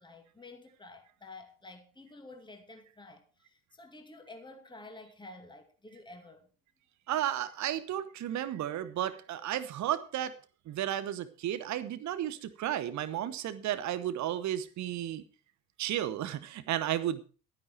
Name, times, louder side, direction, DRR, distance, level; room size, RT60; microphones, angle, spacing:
voice 1, 0.0-6.5, left 2 dB, 10° left, 2.3 m, -51 dB
voice 2, 7.1-10.4 10.7-15.2 15.8-17.2, right 11 dB, 40° right, 1.0 m, -33 dB
12.0 x 10.5 x 4.6 m
figure-of-eight pair, 55°, 46 cm